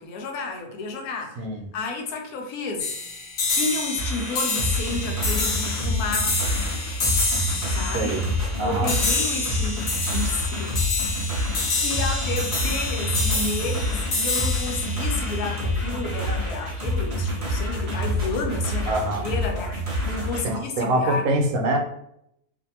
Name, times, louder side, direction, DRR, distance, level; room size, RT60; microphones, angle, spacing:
voice 1, 0.0-1.5 1.7-2.9 3.5-6.6 7.7-8.2 8.6-11.4 11.8-21.2, left 3 dB, 80° left, 1.1 m, -31 dB
voice 2, 1.4-1.7 7.9-8.2 8.6-8.9 18.9-19.2 20.4-21.8, right 1 dB, 75° right, 1.0 m, -24 dB
sound 1, 2.8-16.2, left 2 dB, 60° left, 1.1 m, -28 dB
sound 2, 4.0-20.4, equal, 35° right, 0.5 m, -27 dB
2.6 x 2.5 x 2.7 m
omnidirectional pair, 1.5 m